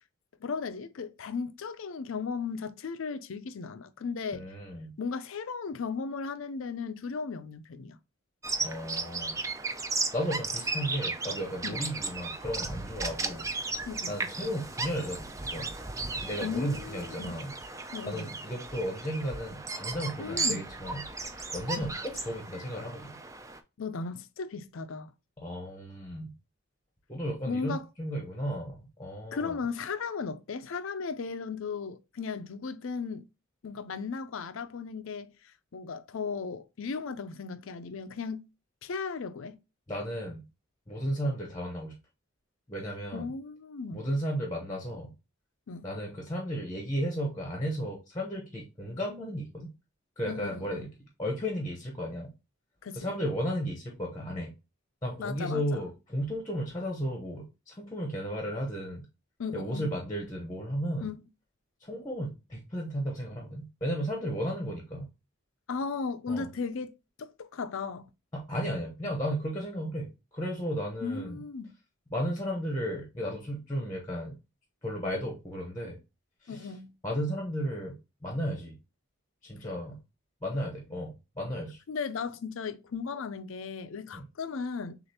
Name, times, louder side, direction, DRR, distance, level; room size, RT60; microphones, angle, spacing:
voice 1, 0.4-4.4 5.0-8.0 11.6-11.8 13.9-14.2 16.4-17.4 17.9-18.3 20.2-20.7 21.3-21.5 21.8-21.9 23.8-25.1 27.5-27.9 29.3-33.2 33.6-38.4 38.8-39.6 43.1-44.0 45.7-45.9 50.3-50.9 52.8-53.1 55.2-55.8 59.4-59.9 61.0-61.2 65.7-66.9 67.2-68.1 71.0-71.7 76.5-76.9 81.9-85.0, left 5 dB, 65° left, 0.4 m, -36 dB
voice 2, 4.3-4.9 8.6-9.4 10.1-13.5 14.1-15.7 16.2-17.5 18.0-21.0 21.5-23.2 25.4-26.3 27.1-29.6 39.9-40.4 40.9-42.0 42.7-43.3 43.9-45.1 45.8-49.7 50.2-50.9 51.2-52.3 52.9-54.5 55.0-59.0 59.5-61.1 61.8-65.1 66.3-66.5 68.3-71.4 72.1-74.3 74.8-76.0 76.4-76.7 77.0-78.8 79.4-80.0 80.4-81.8 84.1-84.2, equal, 15° left, 0.8 m, -34 dB
Bird vocalization bird call bird song, 8.4-23.6, right 3 dB, 15° right, 0.3 m, -35 dB
6.4 x 2.5 x 2.8 m
head